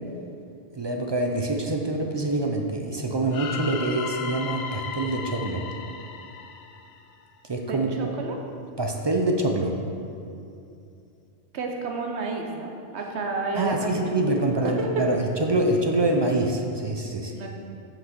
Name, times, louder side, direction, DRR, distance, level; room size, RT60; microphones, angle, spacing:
voice 1, 0.8-5.6 7.5-8.1 8.8-9.7 13.5-17.3, right 2 dB, 40° right, 2 dB, 0.4 m, -25 dB
sound 1, 3.3-7.4, left 6 dB, 75° left, 0.8 m, -36 dB
voice 2, 7.7-8.4 11.5-14.0 14.3-14.9 17.3-17.6, right 3 dB, 85° right, 2 dB, 1.1 m, -31 dB
6.0 x 5.1 x 6.1 m, 2.6 s
omnidirectional pair, 1.1 m